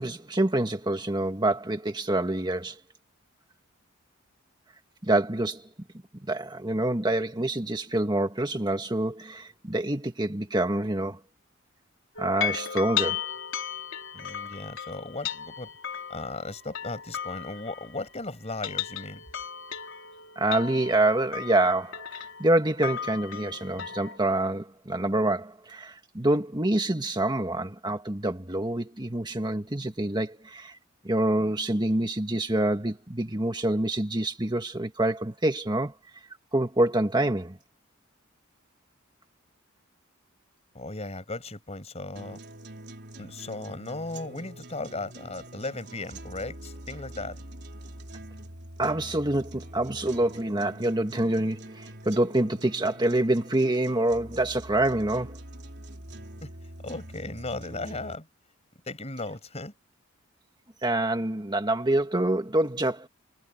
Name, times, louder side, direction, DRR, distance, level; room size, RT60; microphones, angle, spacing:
voice 1, 0.0-2.8 5.0-5.7 6.2-11.2 12.2-13.2 20.3-30.8 31.0-35.9 36.5-37.6 48.8-55.4 60.8-63.1, right 1 dB, 20° right, 1.7 m, -26 dB
sound 1, 12.2-18.1 18.5-24.2, left 8 dB, 70° left, 3.5 m, -36 dB
voice 2, 14.1-15.7 16.1-19.2 40.7-42.4 43.2-47.4 56.4-56.5 56.8-58.3 58.9-59.7, left 2 dB, 30° left, 5.2 m, -36 dB
sound 2, 42.2-58.2, right 1 dB, 55° right, 4.0 m, -44 dB
head